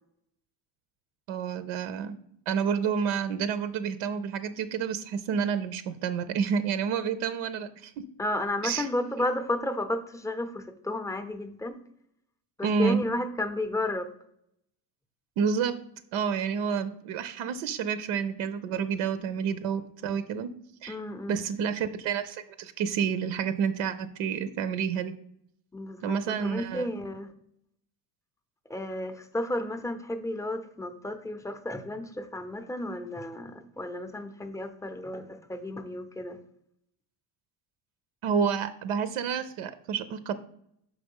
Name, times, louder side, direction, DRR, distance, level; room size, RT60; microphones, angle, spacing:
voice 1, 1.3-2.2 2.5-8.0 8.6-8.9 9.2-9.3 12.6-13.0 15.4-15.7 16.1-20.5 20.8-21.0 21.3-25.1 26.0-26.9 38.2-40.3, right 7 dB, 85° right, 12 dB, 0.6 m, -29 dB
voice 2, 8.2-11.8 12.6-14.1 20.9-21.4 25.7-27.3 28.7-36.4, left 1 dB, 5° left, 8 dB, 0.5 m, -32 dB
5.8 x 4.8 x 5.3 m, 0.72 s
cardioid pair, 120°, 48 cm